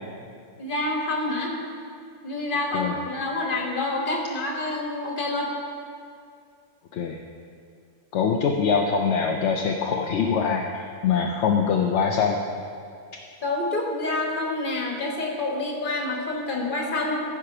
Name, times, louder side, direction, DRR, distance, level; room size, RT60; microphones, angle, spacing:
voice 1, 0.6-1.6 2.2-5.5 13.4-17.2, left 2 dB, 35° left, 0 dB, 1.4 m, -27 dB
voice 2, 8.1-12.4, left 6 dB, 60° left, 2 dB, 0.8 m, -23 dB
14.5 x 5.0 x 5.8 m, 2.3 s
omnidirectional pair, 1.6 m